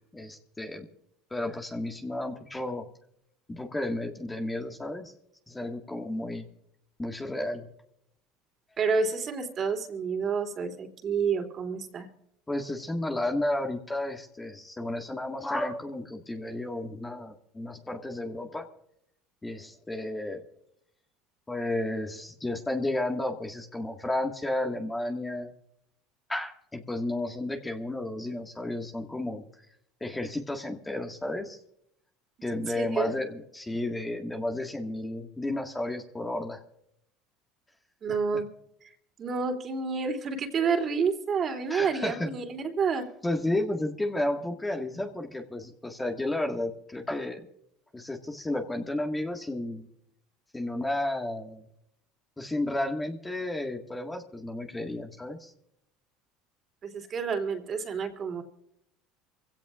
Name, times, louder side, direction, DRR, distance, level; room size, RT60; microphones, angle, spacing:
voice 1, 0.1-0.9 1.3-2.9 3.5-5.1 5.5-6.5 7.0-7.7 12.5-18.7 19.4-20.4 21.5-25.5 26.3-29.4 30.0-31.6 32.4-36.6 41.7-42.3 43.2-47.5 47.9-49.9 50.5-51.7 52.4-55.5, left 1 dB, 15° left, 3 dB, 1.8 m, -32 dB
voice 2, 8.8-12.1 32.5-33.1 38.0-38.5 38.8-38.9 39.2-43.1 56.8-58.4, right 5 dB, 40° right, 4 dB, 3.1 m, -29 dB
24.5 x 16.5 x 2.5 m, 0.75 s
supercardioid pair, 95°, 0 cm